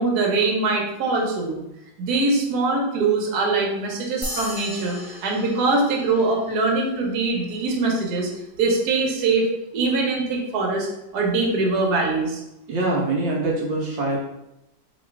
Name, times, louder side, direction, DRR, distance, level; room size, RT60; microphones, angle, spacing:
voice 1, 0.0-1.6 2.0-8.3 8.6-9.5 9.7-10.9 11.1-12.4, right 3 dB, 60° right, -1 dB, 1.3 m, -22 dB
sound 1, 4.2-7.0, equal, ahead, 0.4 m, -36 dB
voice 2, 12.7-14.2, right 2 dB, 75° right, -3 dB, 1.4 m, -24 dB
3.1 x 2.9 x 4.4 m, 0.87 s
omnidirectional pair, 2.1 m